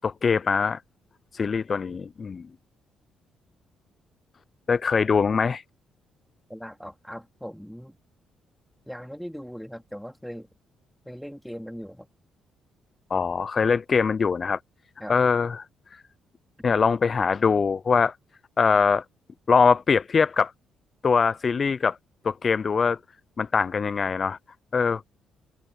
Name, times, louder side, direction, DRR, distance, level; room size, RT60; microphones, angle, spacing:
voice 1, 0.0-0.8 1.3-2.4 4.7-5.6 13.1-14.6 15.1-15.7 15.9-16.0 16.6-18.2 18.6-19.0 19.5-20.5 21.0-22.0 22.2-23.0 23.4-24.4 24.7-25.1, left 5 dB, 40° left, 0.4 m, -22 dB
voice 2, 6.5-8.0 8.9-10.5 11.1-12.1 15.0-15.1, equal, ahead, 3.7 m, -39 dB
cardioid pair, 90°, 0 cm